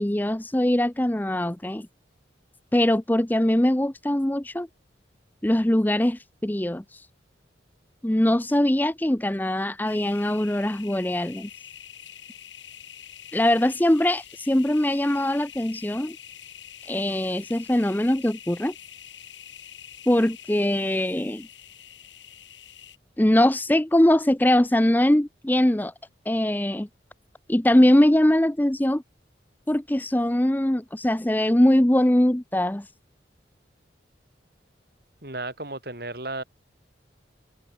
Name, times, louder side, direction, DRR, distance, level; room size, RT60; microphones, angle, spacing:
voice 1, 0.0-1.9 2.7-4.7 5.4-7.0 8.0-11.5 13.3-16.2 16.9-18.7 20.1-21.5 23.2-25.9 26.3-26.9 27.5-29.0 29.7-32.9, left 1 dB, 10° left, 0.6 m, -22 dB
sound 1, 9.8-23.0, left 9 dB, 80° left, 5.9 m, -45 dB
voice 2, 35.2-36.4, right 2 dB, 55° right, 5.1 m, -34 dB
head